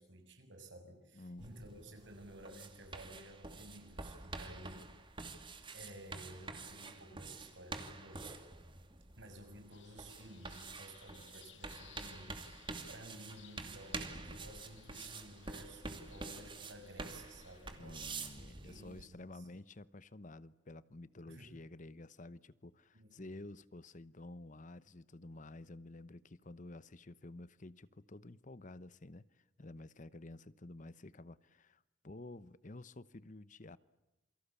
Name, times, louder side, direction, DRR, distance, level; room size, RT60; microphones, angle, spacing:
voice 1, 0.0-4.9 5.7-8.4 9.2-18.2 18.6-19.5 21.3-21.5 22.9-23.3, right 1 dB, 80° right, 7.1 m, -54 dB
voice 2, 1.1-1.5 12.3-12.4 17.8-33.8, left 2 dB, 45° left, 0.9 m, -51 dB
sound 1, 1.4-19.0, right 3 dB, 25° right, 2.6 m, -48 dB
sound 2, 9.7-17.8, left 9 dB, 80° left, 2.2 m, -63 dB
28.5 x 24.0 x 8.4 m
head